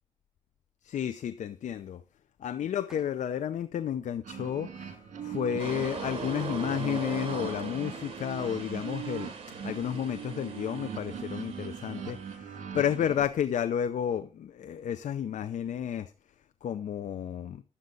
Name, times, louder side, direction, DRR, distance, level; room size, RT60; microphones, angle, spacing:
voice 1, 0.8-2.0 2.4-4.9 5.2-9.3 9.6-16.1 16.6-17.6, left 9 dB, 65° left, 0.6 m, -32 dB
sound 1, 2.9-3.5 4.1-4.2 6.0-6.1 6.4-7.6, equal, 5° right, 2.8 m, -58 dB
sound 2, 4.2-13.2, right 7 dB, 70° right, 2.2 m, -40 dB
sound 3, 5.6-12.4, right 4 dB, 50° right, 3.3 m, -41 dB
11.0 x 8.0 x 3.9 m
cardioid pair, 100°, 13 cm